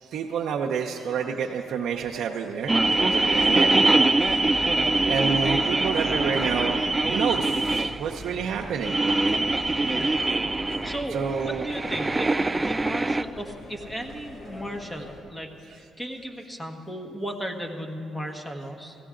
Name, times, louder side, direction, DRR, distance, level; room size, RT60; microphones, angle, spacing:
voice 1, 0.0-3.7 5.1-9.0 11.1-11.7, right 6 dB, 75° right, 0 dB, 0.6 m, -29 dB
sound 1, 2.7-13.2, right 2 dB, 20° right, 0.3 m, -23 dB
sound 2, 2.9-15.2, left 1 dB, 50° left, 2.4 m, -43 dB
voice 2, 4.6-5.0 9.9-10.2 10.8-19.0, equal, 10° left, 3 dB, 1.4 m, -36 dB
16.0 x 15.0 x 3.8 m, 2.8 s
cardioid pair, 80°, 0 cm